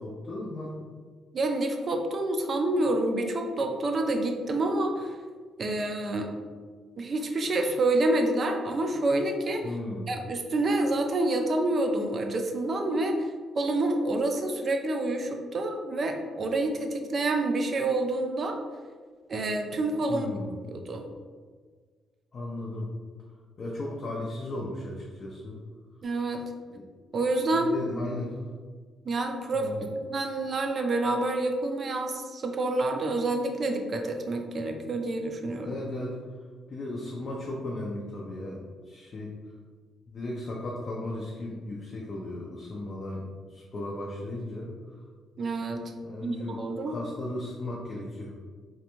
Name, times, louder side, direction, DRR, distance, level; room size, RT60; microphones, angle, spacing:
voice 1, 0.0-0.8 9.6-10.1 20.1-20.6 22.3-22.9 23.6-25.6 26.7-26.9 27.5-28.4 29.5-29.9 35.6-36.2 36.7-38.6 38.9-39.3 40.1-43.2 43.5-44.7 46.0-46.6 46.9-48.3, left 1 dB, 45° left, -4 dB, 0.4 m, -36 dB
voice 2, 1.3-5.2 5.6-6.3 7.0-9.8 10.1-18.6 19.3-20.3 20.6-21.0 26.0-26.4 27.1-28.1 29.1-35.8 45.4-45.8 46.2-47.0, right 2 dB, 45° right, 4 dB, 0.3 m, -28 dB
2.4 x 2.2 x 2.9 m, 1.6 s
cardioid pair, 90°, 0 cm